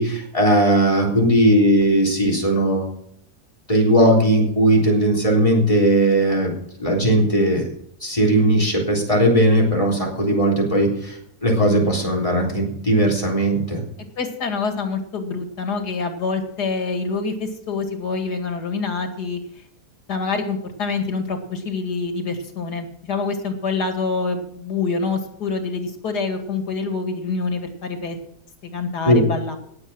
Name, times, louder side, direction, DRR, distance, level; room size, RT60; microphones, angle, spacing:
voice 1, 0.0-2.9 3.7-6.5 6.8-7.6 8.0-13.8 29.1-29.2, right 1 dB, 20° left, 0 dB, 3.8 m, -18 dB
voice 2, 14.2-19.4 20.1-28.2 28.6-29.6, left 4 dB, 90° left, 6 dB, 2.7 m, -26 dB
18.0 x 7.2 x 6.2 m, 0.71 s
omnidirectional pair, 1.7 m